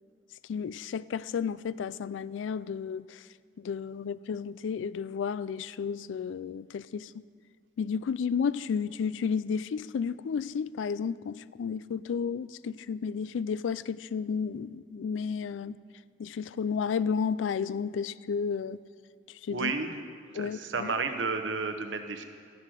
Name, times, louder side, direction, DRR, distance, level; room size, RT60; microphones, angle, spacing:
voice 1, 0.5-3.2 3.6-7.1 7.8-15.8 16.2-18.8 19.5-19.7 20.3-20.9, left 6 dB, 85° left, 0.3 m, -32 dB
voice 2, 19.5-20.0 20.3-22.2, right 4 dB, 85° right, 1.0 m, -32 dB
13.0 x 10.5 x 4.9 m
head